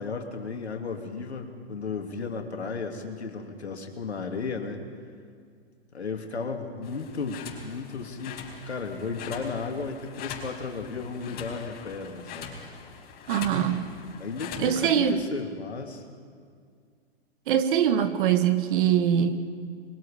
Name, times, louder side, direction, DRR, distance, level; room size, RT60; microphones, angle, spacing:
voice 1, 0.0-4.8 5.9-12.5 14.2-16.0, left 4 dB, 90° left, 3 dB, 2.6 m, -34 dB
sound 1, 6.8-14.9, left 6 dB, 30° left, 4.6 m, -42 dB
voice 2, 13.3-13.9 14.6-15.2 17.5-19.4, right 9 dB, 55° right, 10 dB, 1.6 m, -23 dB
25.0 x 22.5 x 5.1 m, 2.1 s
hypercardioid pair, 120°, 32 cm